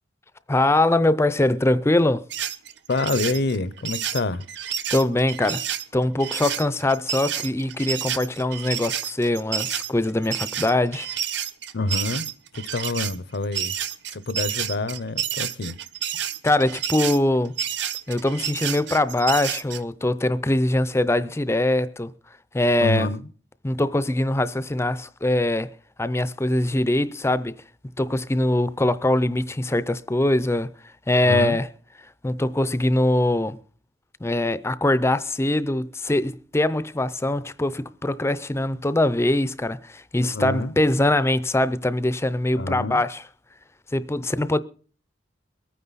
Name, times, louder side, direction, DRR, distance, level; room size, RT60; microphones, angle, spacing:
voice 1, 0.5-2.2 4.9-5.6 5.9-11.1 16.4-17.5 18.1-22.1 22.5-23.1 23.6-25.7 26.0-27.6 28.0-30.7 31.1-31.7 32.2-33.6 34.2-43.2 43.9-44.6, left 1 dB, 15° left, 0.5 m, -22 dB
sound 1, 2.3-19.8, right 9 dB, 65° right, 0.8 m, -30 dB
voice 2, 2.9-4.5 11.7-12.3 12.6-13.7 14.1-15.8 22.8-23.2 31.1-31.6 40.2-40.7 42.6-43.0, left 2 dB, 60° left, 0.7 m, -27 dB
22.5 x 9.4 x 4.1 m
head